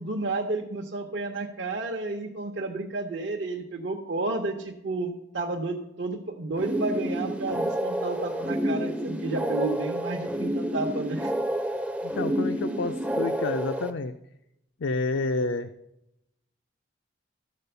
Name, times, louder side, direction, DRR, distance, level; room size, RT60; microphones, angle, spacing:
voice 1, 0.0-11.3, right 2 dB, 70° right, -1 dB, 0.8 m, -31 dB
sound 1, 6.5-13.9, right 1 dB, 5° right, 0.4 m, -29 dB
voice 2, 12.0-14.1 14.8-15.7, left 3 dB, 75° left, 7 dB, 0.5 m, -29 dB
13.0 x 4.3 x 6.8 m, 0.85 s
head